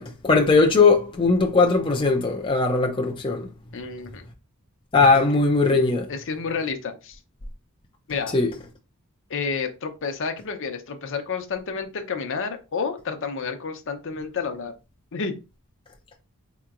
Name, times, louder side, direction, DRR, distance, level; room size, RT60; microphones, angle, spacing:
voice 1, 0.0-3.5 4.9-6.1 8.3-8.5, left 3 dB, 25° left, 0.5 m, -19 dB
voice 2, 3.7-4.2 6.1-7.2 8.1-8.3 9.3-14.7 15.1-15.3, left 5 dB, 60° left, 0.7 m, -30 dB
4.3 x 2.9 x 2.4 m
head